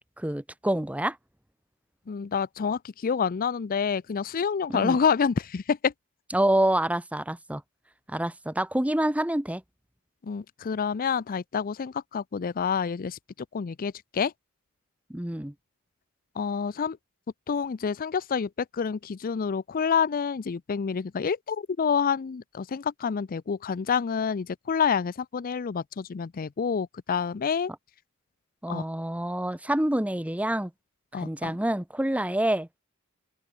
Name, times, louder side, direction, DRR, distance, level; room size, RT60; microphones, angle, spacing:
voice 1, 0.2-1.2 4.7-5.0 6.3-7.6 8.1-9.6 15.1-15.5 28.6-30.7 31.1-32.7, right 1 dB, 5° right, 1.0 m, -27 dB
voice 2, 2.1-5.9 10.2-13.2 13.5-14.3 16.4-17.0 17.5-27.7 28.7-28.8 31.1-31.6, left 6 dB, 40° left, 0.4 m, -28 dB
open air
head